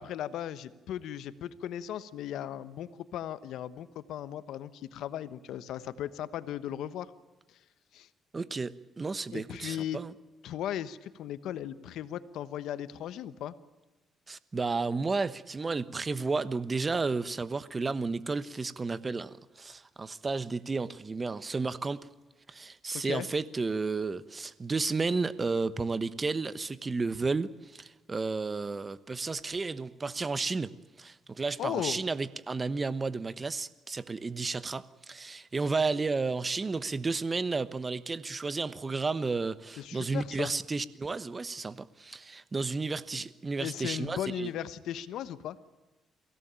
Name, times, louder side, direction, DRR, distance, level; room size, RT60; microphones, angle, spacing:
voice 1, 0.0-7.1 7.5-7.6 7.9-8.1 9.3-10.0 10.4-13.5 22.9-23.3 31.6-32.0 39.8-40.5 43.6-45.6, left 11 dB, 80° left, 1.2 m, -37 dB
voice 2, 8.3-10.1 14.3-22.1 22.5-30.7 31.0-44.5, right 4 dB, 30° right, 1.1 m, -32 dB
23.5 x 17.0 x 9.0 m
cardioid pair, 90°, 0 cm